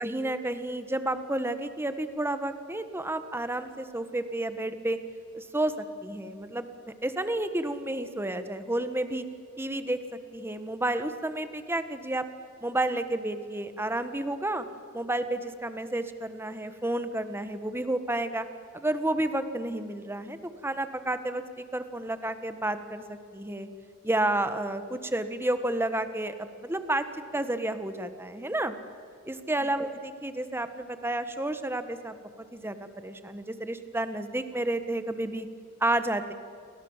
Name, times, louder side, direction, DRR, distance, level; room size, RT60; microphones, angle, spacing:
voice 1, 0.0-5.0 5.3-5.7 6.0-6.7 7.0-9.2 9.6-10.0 10.3-12.3 12.6-14.6 14.9-18.4 18.7-20.4 20.6-23.7 24.0-27.0 27.3-28.7 29.3-35.5 35.8-36.3, right 1 dB, 10° right, 10 dB, 1.5 m, -31 dB
29.5 x 23.5 x 7.4 m, 2.3 s
head